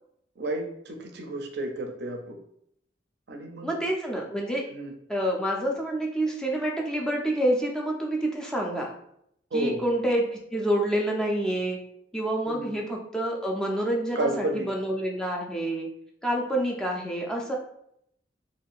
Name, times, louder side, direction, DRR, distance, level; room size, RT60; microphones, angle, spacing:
voice 1, 0.4-2.4 3.3-3.7 4.7-4.9 9.5-9.8 12.5-12.7 14.2-14.7, right 2 dB, 60° right, 4 dB, 0.4 m, -31 dB
voice 2, 3.6-4.6 5.1-8.9 9.5-11.8 12.1-15.9 16.2-17.6, right 1 dB, 5° left, -1 dB, 0.4 m, -28 dB
2.5 x 2.3 x 3.5 m, 0.73 s
head